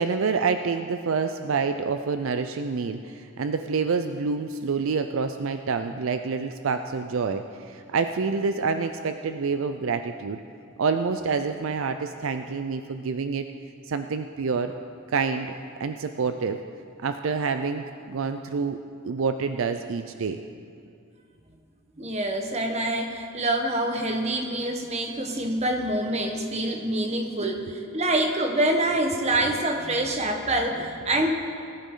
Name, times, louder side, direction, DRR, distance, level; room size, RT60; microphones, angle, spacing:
voice 1, 0.0-10.4 10.8-13.5 13.9-14.7 15.1-15.5 15.8-16.6 17.0-18.8 19.0-20.4 27.4-27.5, right 5 dB, 65° right, 8 dB, 0.4 m, -27 dB
voice 2, 22.0-31.3, right 1 dB, 30° right, 3 dB, 1.1 m, -26 dB
19.5 x 10.5 x 3.8 m, 2.4 s
head